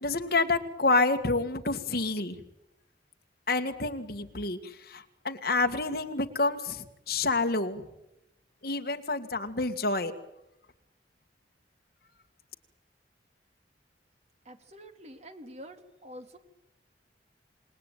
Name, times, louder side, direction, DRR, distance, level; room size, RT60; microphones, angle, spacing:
voice 1, 0.0-2.4 3.5-7.8 8.6-10.1, left 3 dB, 55° left, 5 dB, 2.0 m, -28 dB
voice 2, 14.4-16.4, equal, 35° right, 7 dB, 2.5 m, -47 dB
28.0 x 19.5 x 9.2 m, 0.91 s
head